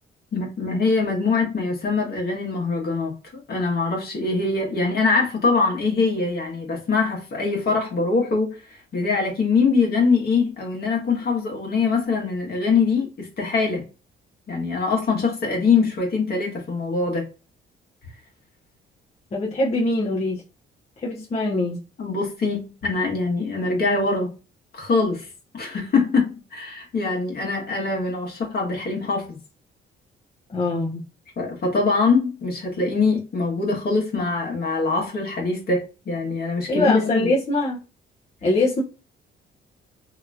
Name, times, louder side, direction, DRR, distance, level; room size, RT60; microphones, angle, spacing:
voice 1, 0.3-3.1 3.5-8.6 8.9-13.8 14.5-17.3 22.0-24.4 24.7-25.2 25.5-29.4 31.4-37.3, left 4 dB, 55° left, 1.4 m, -23 dB
voice 2, 19.3-20.4 21.0-21.8 30.5-31.0 36.7-37.8 38.4-38.8, left 2 dB, 35° left, 0.9 m, -23 dB
2.9 x 2.9 x 2.4 m
cardioid pair, 90°, 20 cm